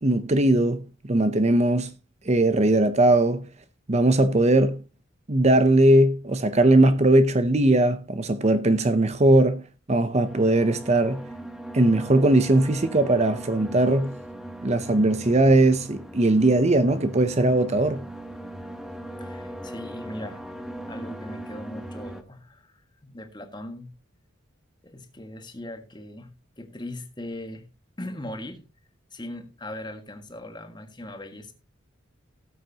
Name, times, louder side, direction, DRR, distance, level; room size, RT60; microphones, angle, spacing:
voice 1, 0.0-1.9 2.3-3.5 3.9-4.8 5.3-11.3 11.7-14.2 14.6-18.0, right 1 dB, 35° right, 0.7 m, -20 dB
sound 1, 10.2-22.2, right 1 dB, ahead, 1.1 m, -39 dB
voice 2, 19.2-20.4 20.8-23.9 24.8-27.7 28.0-28.6 29.1-31.5, left 1 dB, 20° left, 1.7 m, -39 dB
18.0 x 7.8 x 2.9 m
head